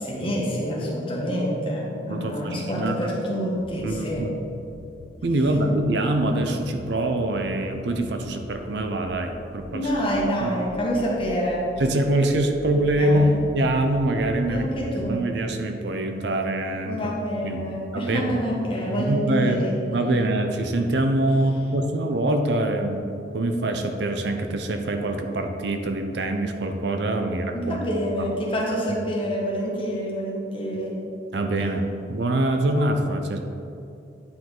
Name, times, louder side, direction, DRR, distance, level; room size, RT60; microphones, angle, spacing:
voice 1, 0.0-4.3 9.7-11.7 13.0-13.4 14.5-15.2 16.8-20.4 21.3-21.4 27.2-31.0, equal, 30° left, -4 dB, 1.4 m, -27 dB
voice 2, 2.1-3.1 3.8-4.4 5.2-9.9 10.4-10.5 11.8-14.7 15.1-17.0 17.4-17.6 17.9-18.4 18.9-27.8 31.3-33.4, right 1 dB, 65° right, 5 dB, 0.6 m, -24 dB
sound 1, 3.6-15.1, left 2 dB, 80° left, 0.5 m, -43 dB
9.6 x 4.7 x 3.9 m, 2.6 s
head